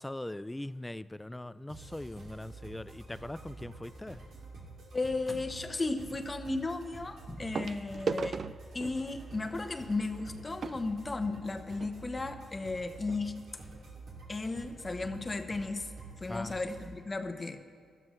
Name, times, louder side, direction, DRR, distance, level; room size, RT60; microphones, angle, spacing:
voice 1, 0.0-4.2 16.3-16.6, left 1 dB, 15° left, 16 dB, 0.3 m, -41 dB
sound 1, 1.7-16.9, right 3 dB, 80° right, 2.6 m, -49 dB
sound 2, 4.0-4.3 5.9-6.0 7.5-11.9 12.7-12.8 13.0-13.2 13.7-13.8, right 5 dB, 60° right, 0.3 m, -39 dB
voice 2, 4.9-8.4 8.7-13.4 14.3-15.9 16.2-17.6, left 3 dB, 30° left, 7 dB, 1.0 m, -35 dB
17.0 x 12.5 x 3.2 m, 2.1 s
cardioid pair, 60°, 0 cm